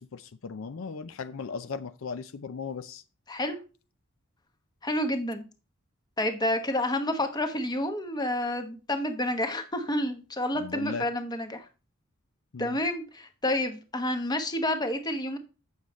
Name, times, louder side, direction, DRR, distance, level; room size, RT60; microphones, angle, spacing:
voice 1, 0.0-3.0 10.5-11.0 12.5-12.8, left 5 dB, 70° left, 11 dB, 0.5 m, -37 dB
voice 2, 4.8-5.4 6.2-11.7 12.6-15.4, left 1 dB, 20° left, 7 dB, 1.0 m, -29 dB
8.3 x 6.6 x 4.1 m, 0.33 s
head